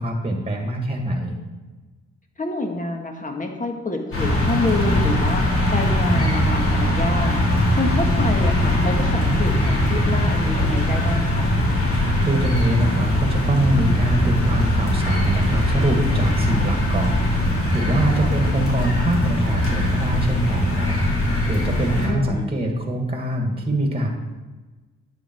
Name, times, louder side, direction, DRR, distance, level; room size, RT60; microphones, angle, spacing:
voice 1, 0.0-1.4 12.2-24.1, right 1 dB, 20° right, 2 dB, 2.0 m, -24 dB
voice 2, 2.4-11.5 18.2-18.4 21.9-22.5, left 2 dB, 25° left, 3 dB, 2.0 m, -28 dB
sound 1, 4.1-22.1, left 1 dB, 45° left, 4.1 m, -21 dB
11.0 x 8.5 x 4.6 m, 1.2 s
cardioid pair, 90°, 30 cm